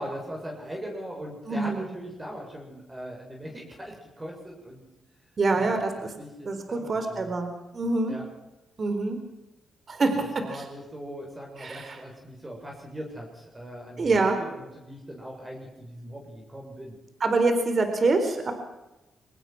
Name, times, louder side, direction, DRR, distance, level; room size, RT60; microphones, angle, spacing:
voice 1, 0.0-4.8 5.5-5.7 6.0-7.3 7.8-8.2 10.4-17.0, equal, 20° right, 0 dB, 7.2 m, -40 dB
voice 2, 1.5-1.9 5.4-5.9 6.5-8.1 8.8-9.2 9.9-10.1 10.5-10.6 11.6-11.9 14.0-14.3 17.2-18.5, right 3 dB, 45° right, 7 dB, 4.3 m, -25 dB
24.5 x 19.5 x 6.1 m, 0.98 s
cardioid pair, 90°, 0 cm